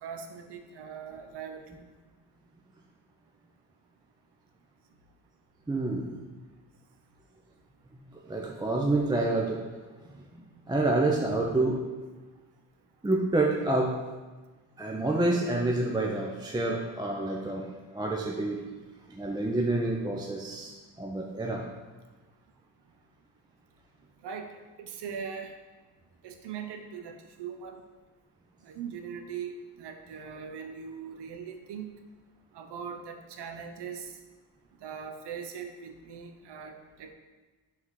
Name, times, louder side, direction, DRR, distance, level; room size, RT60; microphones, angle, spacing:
voice 1, 0.0-1.8 24.2-24.5 24.8-25.5 26.2-27.8 28.6-31.9 32.5-34.1 34.8-37.1, right 7 dB, 65° right, 6 dB, 0.6 m, -40 dB
voice 2, 5.7-6.2 8.3-9.6 10.1-11.8 13.0-14.0 14.8-18.6 19.1-21.6, right 2 dB, 10° right, -1 dB, 0.4 m, -28 dB
3.8 x 2.7 x 4.6 m, 1.3 s
supercardioid pair, 50°, 44 cm